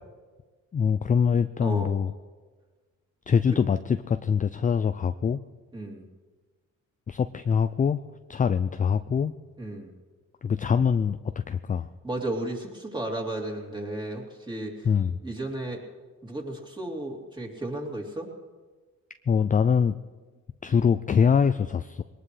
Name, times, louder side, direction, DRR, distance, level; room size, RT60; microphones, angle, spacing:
voice 1, 0.7-2.1 3.3-5.4 7.1-8.0 8.3-9.3 10.4-11.2 11.5-11.9 14.8-15.2 19.3-19.9 20.6-22.0, left 6 dB, 25° left, 10 dB, 0.4 m, -23 dB
voice 2, 1.6-1.9 5.7-6.1 9.6-9.9 12.0-14.9 15.2-15.8 16.2-18.3, right 1 dB, 15° right, -1 dB, 3.0 m, -34 dB
22.0 x 19.0 x 3.3 m, 1.4 s
cardioid pair, 90°, 30 cm